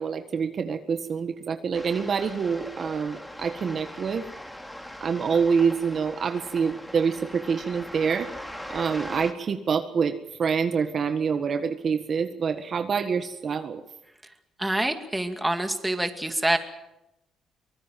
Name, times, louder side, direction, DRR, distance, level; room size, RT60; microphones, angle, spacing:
voice 1, 0.0-4.2 5.0-13.8, right 6 dB, 50° right, 8 dB, 1.6 m, -26 dB
sound 1, 1.7-9.3, equal, 5° left, 3.0 m, -40 dB
voice 2, 14.6-16.6, right 1 dB, 10° right, 7 dB, 2.4 m, -26 dB
24.0 x 19.5 x 7.6 m, 0.87 s
cardioid pair, 90°, 0 cm